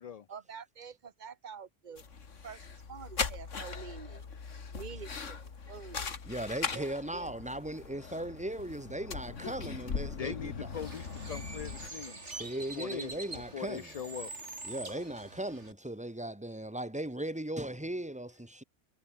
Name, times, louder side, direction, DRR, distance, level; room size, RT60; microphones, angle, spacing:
voice 1, 0.3-2.0 2.4-4.3 4.7-6.1 6.7-7.3, right 6 dB, 40° right, 1.4 m, -47 dB
sound 1, 2.0-11.9, left 5 dB, 85° left, 2.2 m, -40 dB
voice 2, 6.2-10.7 12.0-12.1 12.4-13.9 14.6-18.6, right 1 dB, 5° right, 2.5 m, -38 dB
voice 3, 10.2-12.2 12.8-13.1 13.5-14.3, left 8 dB, 60° left, 0.4 m, -40 dB
Bird, 10.7-15.7, right 3 dB, 65° right, 4.1 m, -45 dB
omnidirectional pair, 1.3 m